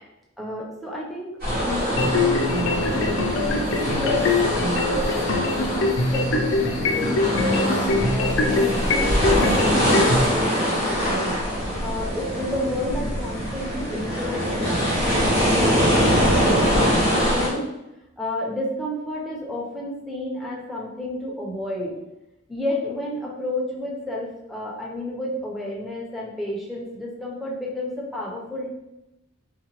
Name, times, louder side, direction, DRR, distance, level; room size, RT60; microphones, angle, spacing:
voice 1, 0.4-2.9 3.3-7.7 8.1-17.6 18.2-21.9 22.5-28.7, left 1 dB, ahead, -4 dB, 0.6 m, -31 dB
sound 1, 1.4-17.5, equal, 50° right, 1.2 m, -23 dB
sound 2, 2.0-10.3, left 3 dB, 70° left, 0.5 m, -23 dB
3.8 x 2.2 x 2.9 m, 0.92 s
head